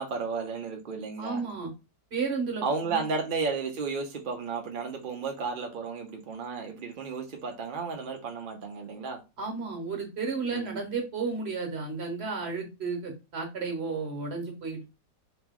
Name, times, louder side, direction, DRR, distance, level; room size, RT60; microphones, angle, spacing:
voice 1, 0.0-1.4 2.6-9.2 10.5-10.8, right 4 dB, 60° right, 0.5 m, -33 dB
voice 2, 1.2-1.7 2.1-3.1 9.4-14.8, right 4 dB, 45° right, 1.3 m, -33 dB
3.0 x 3.0 x 3.6 m
omnidirectional pair, 1.8 m